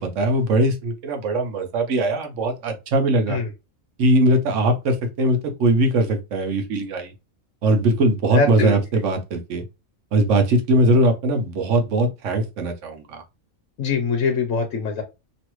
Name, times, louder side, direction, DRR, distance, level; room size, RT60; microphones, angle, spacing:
voice 1, 0.0-3.4 4.0-7.1 7.6-9.6 10.1-13.2, right 1 dB, 65° right, 1.0 m, -20 dB
voice 2, 8.3-8.8 13.8-15.0, left 4 dB, 70° left, 1.1 m, -23 dB
3.0 x 2.5 x 3.0 m
omnidirectional pair, 1.4 m